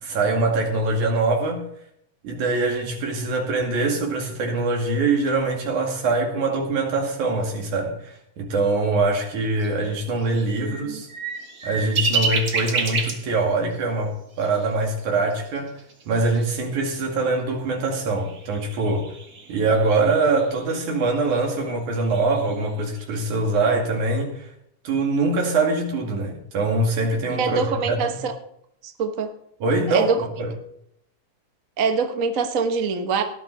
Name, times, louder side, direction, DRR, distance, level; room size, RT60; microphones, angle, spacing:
voice 1, 0.0-1.6 2.2-11.1 11.6-15.7 16.1-19.1 19.5-24.5 24.8-28.2 29.6-30.5, right 3 dB, 70° right, 3.7 m, -23 dB
sound 1, 9.6-9.7 10.2-13.4 13.7-13.8 14.4-14.7 15.0-15.1 15.3-16.5 17.0-17.1 18.2-21.5 21.9-23.2, right 4 dB, 40° right, 1.5 m, -30 dB
voice 2, 10.6-11.0 27.3-28.3 28.8-29.3 29.9-30.2 31.8-33.2, right 5 dB, 85° right, 0.7 m, -24 dB
18.0 x 11.0 x 4.1 m
omnidirectional pair, 3.6 m